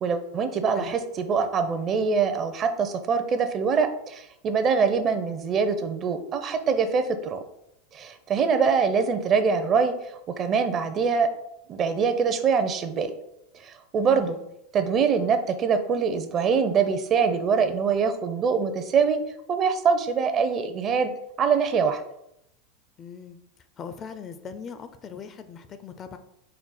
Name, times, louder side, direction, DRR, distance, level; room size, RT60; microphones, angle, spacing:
voice 1, 0.0-7.4 7.9-9.9 10.3-11.3 11.7-13.1 13.6-14.4 14.7-19.2 19.5-21.1 21.4-22.0, right 5 dB, 40° right, 9 dB, 0.5 m, -24 dB
voice 2, 14.0-14.5 23.0-23.4 23.8-26.2, left 6 dB, 35° left, 10 dB, 0.4 m, -40 dB
4.3 x 2.1 x 4.0 m, 0.79 s
hypercardioid pair, 95°, 0 cm